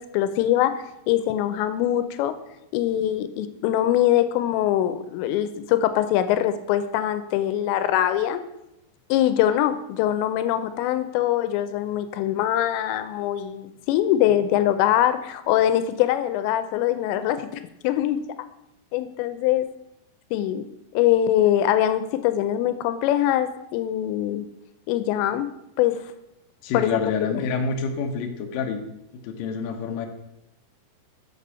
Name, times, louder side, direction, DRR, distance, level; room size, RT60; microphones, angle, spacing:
voice 1, 0.0-2.4 2.7-8.4 9.1-18.2 18.9-19.7 20.3-20.7 20.9-24.5 24.9-25.5 25.8-26.0 26.7-27.0, left 12 dB, 90° left, 11 dB, 2.8 m, -23 dB
voice 2, 26.6-28.8 29.2-30.1, left 5 dB, 75° left, 3 dB, 2.1 m, -27 dB
6.7 x 6.7 x 5.5 m, 0.87 s
omnidirectional pair, 5.1 m